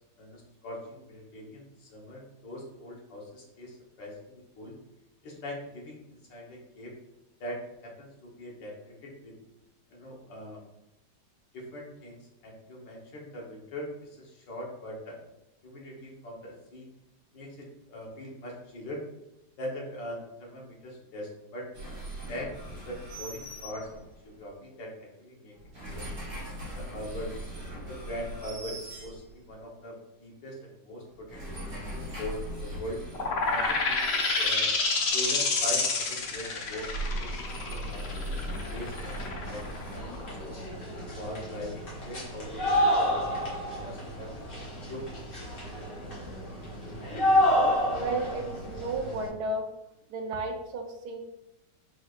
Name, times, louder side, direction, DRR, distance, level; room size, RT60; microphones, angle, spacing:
voice 1, 0.2-4.7 5.2-6.9 7.4-9.3 9.9-10.6 11.5-15.2 15.6-16.9 17.3-19.0 19.6-21.7 22.3-24.0 24.2-25.5 25.9-26.3 26.8-27.5 27.9-31.4 31.7-33.0 33.4-34.7 35.1-38.2 38.7-40.6 41.1-43.5 43.8-44.3 44.8-45.8, equal, 85° left, -2 dB, 1.9 m, -41 dB
sound 1, 21.7-24.3 25.5-29.6 31.1-35.1 36.6-40.8, right 1 dB, 40° right, 1.7 m, -39 dB
sound 2, 33.1-40.5, left 4 dB, 70° left, 0.6 m, -28 dB
sound 3, 36.2-36.3 36.6-49.3, equal, 45° left, 1.8 m, -30 dB
voice 2, 47.9-49.7 50.1-51.2, right 2 dB, 70° right, 4 dB, 1.1 m, -33 dB
4.8 x 4.1 x 2.4 m, 0.89 s
omnidirectional pair, 1.9 m